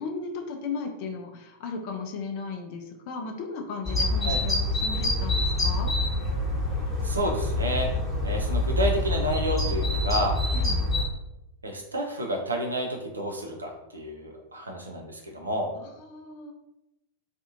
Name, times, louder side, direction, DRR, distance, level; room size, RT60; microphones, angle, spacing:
voice 1, 0.0-5.9 10.5-10.8 15.7-16.5, left 4 dB, 45° left, 3 dB, 0.4 m, -36 dB
sound 1, 3.8-11.0, left 2 dB, 5° left, 1.0 m, -26 dB
voice 2, 7.0-7.9 8.2-10.4 11.6-15.7, equal, 80° right, 1 dB, 0.5 m, -30 dB
2.6 x 2.4 x 2.5 m, 0.89 s
figure-of-eight pair, 90°, 0 cm